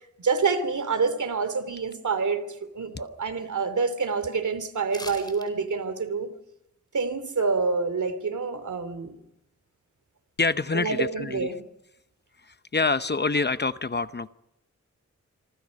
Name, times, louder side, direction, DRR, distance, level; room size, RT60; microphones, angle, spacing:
voice 1, 0.2-2.4 2.7-6.3 6.9-9.2 10.7-11.6, right 4 dB, 75° right, 11 dB, 3.0 m, -27 dB
sound 1, 4.9-5.5 5.8-5.9, left 1 dB, 15° left, 4.2 m, -40 dB
voice 2, 10.4-11.5 12.4-14.3, left 3 dB, 35° left, 13 dB, 0.8 m, -26 dB
26.5 x 25.0 x 5.3 m, 0.85 s
wide cardioid pair, 80°, 30 cm